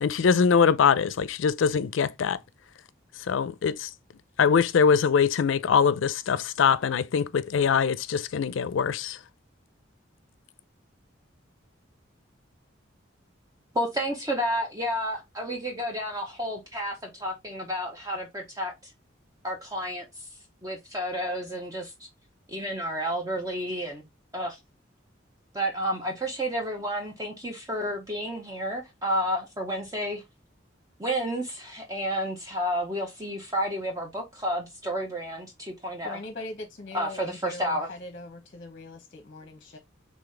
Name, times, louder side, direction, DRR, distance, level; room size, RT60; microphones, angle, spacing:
voice 1, 0.0-2.4 3.3-3.9 4.4-9.2, left 6 dB, 80° left, 0.4 m, -23 dB
voice 2, 13.7-18.9 19.4-20.3 20.6-22.1 22.5-24.0 24.3-24.6 25.5-30.2 31.0-36.2 36.9-37.9, equal, 20° right, 0.7 m, -31 dB
voice 3, 36.0-39.8, left 2 dB, 45° left, 0.7 m, -41 dB
4.0 x 3.2 x 3.2 m
head